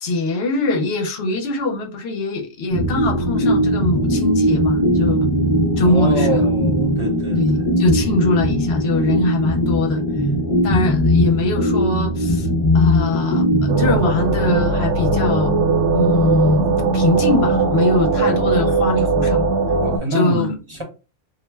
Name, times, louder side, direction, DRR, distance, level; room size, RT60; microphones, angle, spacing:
voice 1, 0.0-5.3 5.8-6.4 7.4-10.0 10.6-12.5 12.7-13.5 13.8-15.6 15.9-16.7 16.9-19.5 20.1-20.5, left 2 dB, 60° left, 0.9 m, -22 dB
sound 1, 2.7-14.6, equal, 40° left, 0.5 m, -19 dB
voice 2, 5.8-7.7 18.2-18.4 19.8-20.8, equal, 30° right, 0.8 m, -25 dB
sound 2, 13.7-20.0, right 3 dB, 75° right, 0.9 m, -19 dB
2.4 x 2.1 x 3.2 m
omnidirectional pair, 1.3 m